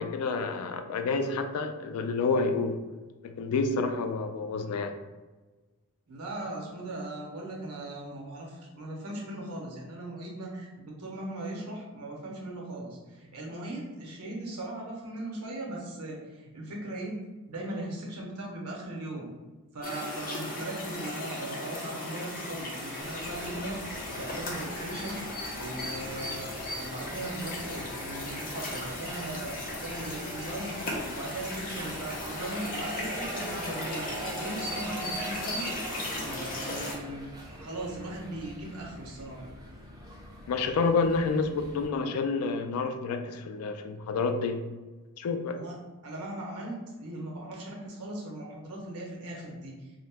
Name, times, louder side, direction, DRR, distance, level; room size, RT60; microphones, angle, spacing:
voice 1, 0.0-2.8 3.2-4.9 40.5-44.6 45.2-45.6, left 4 dB, 70° left, 7 dB, 0.3 m, -29 dB
voice 2, 6.1-17.2 17.5-19.3 19.7-23.8 24.1-25.2 25.5-26.5 26.8-30.7 31.0-35.7 36.2-37.3 37.6-39.4 45.5-45.8 46.0-49.8, right 1 dB, 85° right, -1 dB, 0.8 m, -38 dB
sound 1, 19.8-36.9, left 1 dB, 40° left, 0.6 m, -36 dB
sound 2, 23.0-41.9, right 1 dB, 15° right, 0.4 m, -44 dB
2.7 x 2.1 x 3.4 m, 1.2 s
head